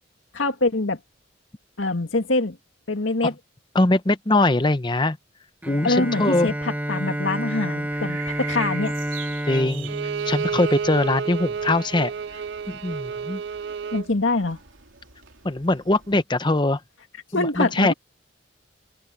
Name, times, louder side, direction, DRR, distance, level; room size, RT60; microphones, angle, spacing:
voice 1, 0.3-1.0 1.8-2.6 2.9-3.3 5.8-8.9 13.9-14.6 17.3-17.9, left 2 dB, 80° left, 2.1 m, -24 dB
voice 2, 3.7-5.2 5.7-6.5 9.5-9.9 10.3-12.1 12.7-13.4 15.4-16.8 17.3-17.9, left 2 dB, 25° left, 0.7 m, -22 dB
Bowed string instrument, 5.6-11.3, right 1 dB, 10° right, 1.2 m, -30 dB
sound 1, 7.9-16.2, right 7 dB, 85° right, 2.9 m, -43 dB
Bowed string instrument 2, 9.8-14.1, right 6 dB, 55° right, 0.4 m, -30 dB
head